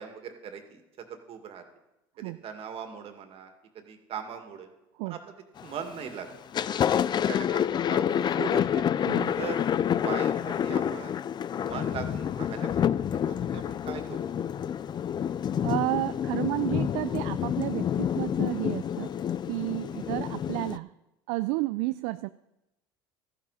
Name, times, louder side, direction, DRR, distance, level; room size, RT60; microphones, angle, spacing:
voice 1, 0.0-1.6 2.2-4.7 5.0-5.3 5.6-6.3 6.7-8.9 9.4-9.6 9.9-11.2 11.6-12.9 13.3-14.2 19.9-20.2, right 7 dB, 50° right, 5 dB, 2.2 m, -40 dB
Thunder, 5.6-6.0 6.4-20.8, left 9 dB, 35° left, 0.5 m, -28 dB
voice 2, 9.1-9.4 15.6-19.1 19.5-20.9 21.3-22.3, right 20 dB, 70° right, 13 dB, 0.4 m, -31 dB
14.5 x 11.5 x 4.2 m, 0.94 s
hypercardioid pair, 85°, 13 cm